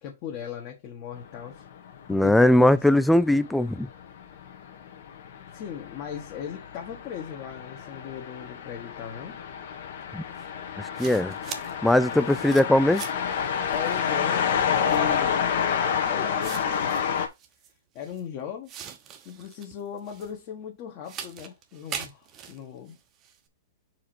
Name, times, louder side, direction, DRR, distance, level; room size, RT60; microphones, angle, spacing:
voice 1, 0.0-1.6 2.1-2.8 5.5-9.4 12.1-12.3 13.7-15.5 16.0-16.9 17.9-18.7 19.2-23.0, left 8 dB, 35° left, 1.5 m, -38 dB
sound 1, 1.2-17.3, left 7 dB, 55° left, 1.5 m, -29 dB
voice 2, 2.1-3.9 10.1-10.2 10.8-11.4 11.8-13.0, left 1 dB, ahead, 0.3 m, -20 dB
Natural Sandy Soil Dirt Spade Shovel Digging Scraping, 10.4-10.5 11.0-13.3 13.7-14.1 14.7-15.1 15.8-15.9 16.4-18.2 18.7-20.4 21.0-23.4, right 8 dB, 25° right, 1.0 m, -42 dB
5.0 x 4.9 x 4.6 m
hypercardioid pair, 155°, 0 cm